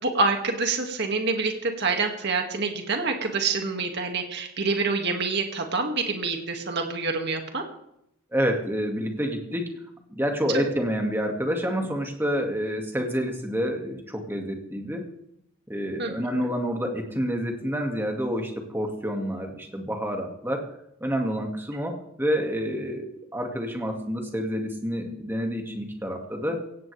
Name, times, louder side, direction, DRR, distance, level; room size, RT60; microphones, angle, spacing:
voice 1, 0.0-7.6 10.5-10.6 16.0-16.5, right 4 dB, 50° right, 3 dB, 2.2 m, -27 dB
voice 2, 8.3-9.8 10.1-15.1 15.7-20.7 21.0-26.6, equal, 10° right, 2 dB, 2.1 m, -28 dB
17.0 x 16.5 x 3.4 m, 0.78 s
head